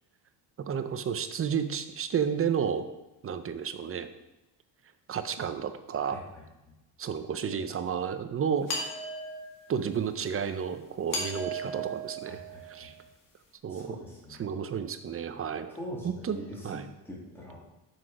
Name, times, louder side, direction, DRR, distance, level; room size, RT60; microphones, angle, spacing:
voice 1, 0.6-2.8 3.2-4.1 5.1-6.2 7.0-8.7 9.7-12.4 12.7-12.9 13.6-13.9 14.4-15.7 16.0-16.4 16.6-16.9, right 7 dB, 30° right, 10 dB, 0.6 m, -31 dB
voice 2, 6.0-6.4 12.3-12.9 13.7-14.4 15.7-16.7 17.0-17.7, left 1 dB, 5° left, -5 dB, 2.5 m, -43 dB
sound 1, 8.7-9.8 11.1-13.0, right 1 dB, 50° left, 2.1 m, -36 dB
7.4 x 6.0 x 4.9 m, 0.98 s
cardioid pair, 115°, 42 cm